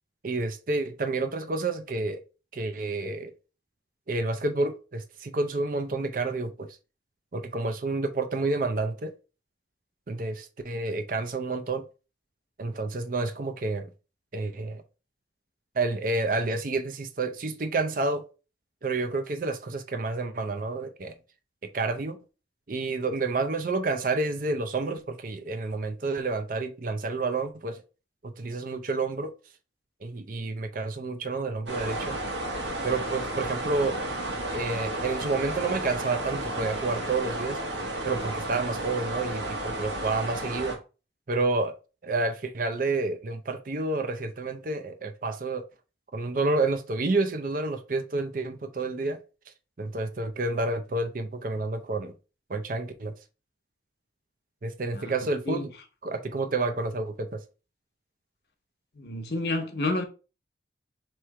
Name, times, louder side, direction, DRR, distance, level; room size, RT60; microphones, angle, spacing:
voice 1, 0.2-2.2 2.5-3.3 4.1-6.7 7.3-9.1 10.1-11.8 12.6-13.9 14.3-14.8 15.8-18.2 18.8-21.1 21.6-22.2 22.7-27.8 28.2-29.3 30.0-32.2 32.8-34.0 34.5-37.6 38.0-40.7 41.3-41.7 42.0-45.6 46.1-49.2 49.8-52.2 52.5-53.1 54.6-55.7 56.0-57.4, right 3 dB, 50° right, 0.5 m, -29 dB
sound 1, 31.7-40.8, right 1 dB, 75° right, 1.2 m, -32 dB
voice 2, 58.9-60.0, left 2 dB, 60° left, 0.9 m, -29 dB
3.2 x 3.1 x 4.7 m
head